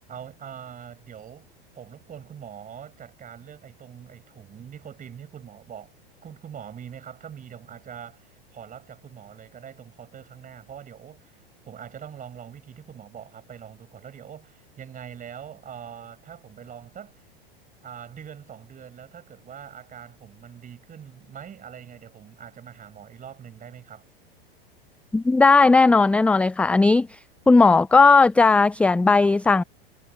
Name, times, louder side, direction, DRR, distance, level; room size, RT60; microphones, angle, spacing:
voice 1, 0.1-1.5 1.7-5.9 6.2-17.3 17.8-24.1, right 8 dB, 25° right, 6.3 m, -43 dB
voice 2, 25.1-27.1 27.5-29.6, left 3 dB, 5° left, 0.4 m, -16 dB
hypercardioid pair, 95°, 30 cm